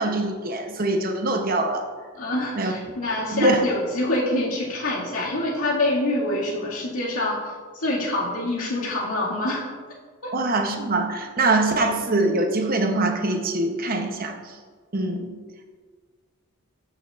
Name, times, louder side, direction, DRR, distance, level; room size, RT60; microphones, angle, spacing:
voice 1, 0.0-1.9 2.6-2.7 3.3-3.6 10.3-14.5 14.9-15.3, right 2 dB, 40° right, 4 dB, 0.8 m, -23 dB
voice 2, 2.1-9.7 10.2-10.3, left 1 dB, 80° left, -6 dB, 2.1 m, -26 dB
14.0 x 6.4 x 2.5 m, 1.6 s
head